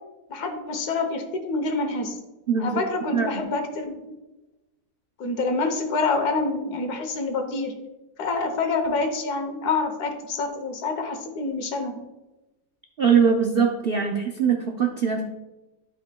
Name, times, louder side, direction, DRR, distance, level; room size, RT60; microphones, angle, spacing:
voice 1, 0.3-2.2 2.6-4.1 5.2-7.7 8.2-12.0, left 3 dB, 75° left, 6 dB, 1.5 m, -27 dB
voice 2, 2.5-2.8 3.1-3.3 13.0-15.2, right 6 dB, 65° right, 2 dB, 0.5 m, -21 dB
12.5 x 5.3 x 2.2 m, 1.0 s
omnidirectional pair, 1.7 m